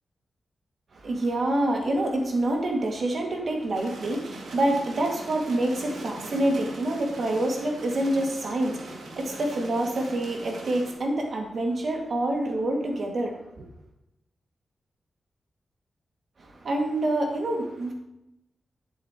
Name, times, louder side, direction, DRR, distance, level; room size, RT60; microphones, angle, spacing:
voice 1, 0.9-13.7 16.4-17.9, right 1 dB, 60° right, 1 dB, 2.0 m, -27 dB
sound 1, 3.7-10.9, right 2 dB, 90° right, 2.0 m, -41 dB
11.0 x 8.6 x 3.0 m, 0.88 s
wide cardioid pair, 105°, 0 cm